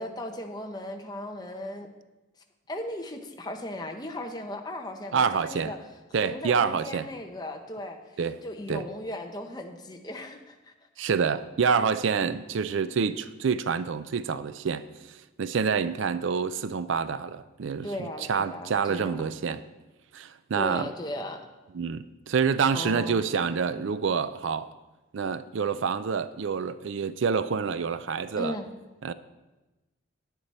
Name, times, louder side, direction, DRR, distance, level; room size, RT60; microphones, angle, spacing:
voice 1, 0.0-1.9 2.7-5.8 6.2-8.0 8.4-10.6 17.8-19.2 20.6-21.5 22.7-23.3 28.4-28.7, left 1 dB, 20° left, 0.9 m, -36 dB
voice 2, 5.1-5.7 6.1-7.1 8.2-8.4 8.7-8.9 11.0-19.6 20.1-20.9 21.7-24.7 25.1-28.6 29.0-29.1, right 6 dB, 70° right, 0.4 m, -27 dB
10.5 x 9.6 x 4.3 m
head